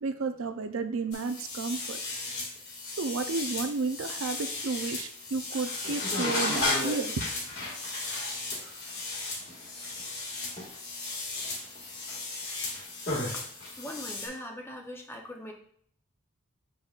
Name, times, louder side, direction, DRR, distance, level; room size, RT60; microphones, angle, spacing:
voice 1, 0.0-2.0 3.0-7.1, right 4 dB, 60° right, 9 dB, 0.4 m, -32 dB
sound 1, 1.1-14.3, left 2 dB, 45° left, 2.0 m, -34 dB
voice 2, 13.8-15.5, equal, 10° left, 1 dB, 0.7 m, -40 dB
7.4 x 5.3 x 2.4 m, 0.63 s
head